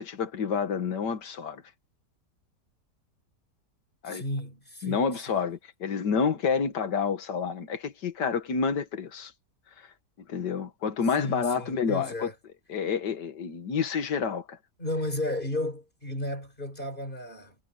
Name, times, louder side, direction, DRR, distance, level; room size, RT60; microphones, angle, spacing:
voice 1, 0.0-1.6 4.0-4.2 4.8-9.3 10.3-12.3 12.7-14.6, left 6 dB, 85° left, 2.1 m, -29 dB
voice 2, 4.1-5.4 11.2-12.3 14.8-17.6, left 1 dB, 30° left, 4.8 m, -33 dB
omnidirectional pair, 1.8 m